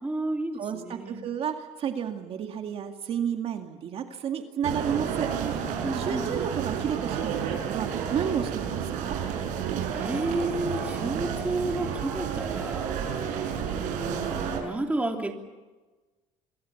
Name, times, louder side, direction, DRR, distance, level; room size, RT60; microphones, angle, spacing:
voice 1, 0.0-1.3 5.8-6.3 9.9-15.3, right 2 dB, 10° right, 3 dB, 3.1 m, -32 dB
voice 2, 0.6-5.3 5.9-9.2, right 8 dB, 45° right, 5 dB, 2.2 m, -31 dB
sound 1, 4.6-14.6, right 8 dB, 75° right, 6.9 m, -31 dB
27.0 x 23.0 x 7.2 m, 1.2 s
cardioid pair, 135°, 13 cm